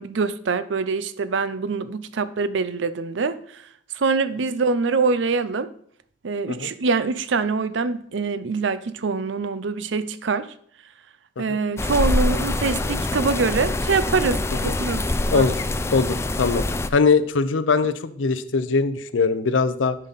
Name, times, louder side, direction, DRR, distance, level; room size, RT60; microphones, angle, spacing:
voice 1, 0.0-3.4 3.9-5.7 6.2-10.5 11.4-15.5, right 4 dB, 70° right, 14 dB, 0.5 m, -24 dB
sound 1, 11.8-16.9, left 2 dB, 15° left, 0.4 m, -25 dB
voice 2, 15.3-15.7 15.9-16.6 16.9-20.0, left 4 dB, 90° left, 13 dB, 0.6 m, -21 dB
10.5 x 5.5 x 4.0 m, 0.64 s
head